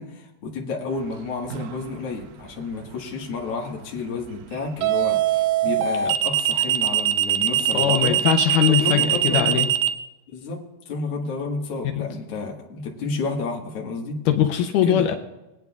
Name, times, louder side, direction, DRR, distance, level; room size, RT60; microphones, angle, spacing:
voice 1, 0.0-8.2 8.7-9.6 10.3-14.2 14.8-15.1, left 3 dB, 50° left, -1 dB, 2.0 m, -31 dB
sound 1, 1.5-1.8 4.8-9.9, right 11 dB, 85° right, 2.3 m, -21 dB
voice 2, 7.7-9.7 12.0-12.1 14.3-15.2, left 9 dB, 90° left, 5 dB, 1.9 m, -21 dB
22.5 x 9.1 x 2.4 m, 0.96 s
omnidirectional pair, 4.5 m